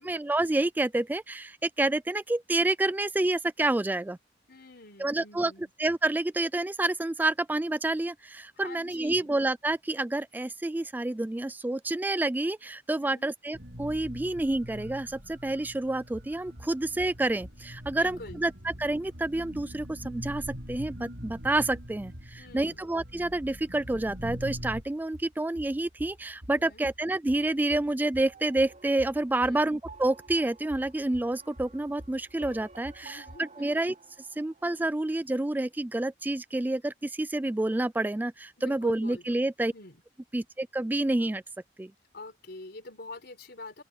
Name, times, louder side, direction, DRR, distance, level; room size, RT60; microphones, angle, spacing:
voice 1, 0.0-4.2 5.0-5.5 5.8-33.9 34.4-39.7 40.3-41.4 41.8-41.9, right 2 dB, 10° right, 0.3 m, -29 dB
voice 2, 4.5-5.7 8.6-9.3 13.0-13.3 17.8-18.5 22.4-22.9 26.6-26.9 29.4-29.7 33.0-33.8 38.6-39.5 39.7-40.0 42.1-43.8, left 2 dB, 60° left, 4.4 m, -46 dB
sound 1, 13.5-24.8, equal, 65° right, 5.8 m, -43 dB
sound 2, 16.1-33.4, equal, 85° right, 4.4 m, -50 dB
sound 3, 28.2-34.9, right 4 dB, 40° right, 4.2 m, -53 dB
open air
head